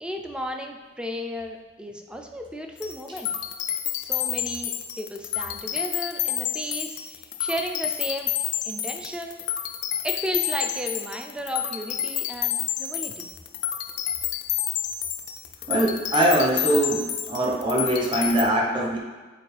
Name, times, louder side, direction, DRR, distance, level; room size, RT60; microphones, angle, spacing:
voice 1, 0.0-3.3 3.9-8.3 8.6-9.4 10.0-13.3, equal, 5° right, 3 dB, 0.4 m, -34 dB
sound 1, 2.8-18.4, left 10 dB, 65° left, 0.5 m, -29 dB
voice 2, 15.7-19.0, right 1 dB, 25° right, -2 dB, 1.0 m, -22 dB
7.7 x 4.3 x 3.3 m, 1.3 s
head